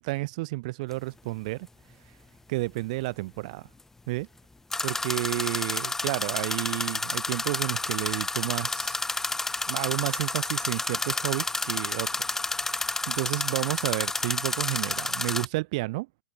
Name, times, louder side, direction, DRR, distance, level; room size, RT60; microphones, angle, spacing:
voice 1, 0.0-1.7 2.5-3.7 4.1-4.3 4.8-9.0 9.7-12.1 12.5-16.1, right 22 dB, 55° right, 0.5 m, -31 dB
sound 1, 0.9-1.0 4.7-15.5, left 3 dB, 10° left, 1.0 m, -30 dB
hypercardioid pair, 105°, 5 cm